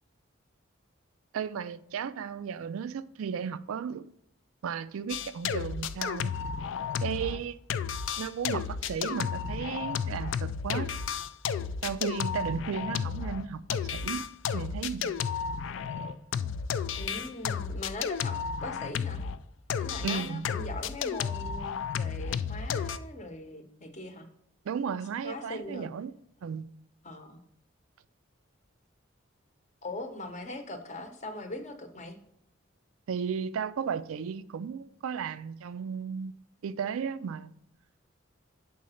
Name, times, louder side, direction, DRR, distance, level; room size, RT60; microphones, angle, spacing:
voice 1, 1.3-4.1 4.6-6.3 7.0-7.6 8.2-10.9 11.8-15.2 20.0-20.4 24.6-26.1 26.4-26.7 33.1-37.5, right 7 dB, 85° right, 0.3 m, -35 dB
sound 1, 5.1-7.4 7.7-19.4 19.7-23.0, left 7 dB, 65° left, 0.3 m, -32 dB
voice 2, 16.9-19.2 19.8-24.3 25.2-26.0 27.0-27.4 29.8-32.2, left 1 dB, 35° left, 0.8 m, -40 dB
6.3 x 3.9 x 5.5 m
head